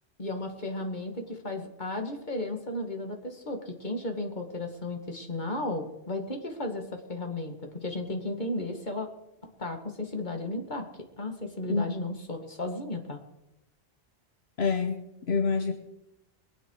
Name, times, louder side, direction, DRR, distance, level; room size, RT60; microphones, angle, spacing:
voice 1, 0.2-9.1 9.4-10.8 11.2-13.2, left 2 dB, 45° left, 4 dB, 2.3 m, -34 dB
voice 2, 14.6-15.7, left 4 dB, 80° left, 6 dB, 1.3 m, -27 dB
22.0 x 9.6 x 4.9 m, 0.91 s
omnidirectional pair, 1.1 m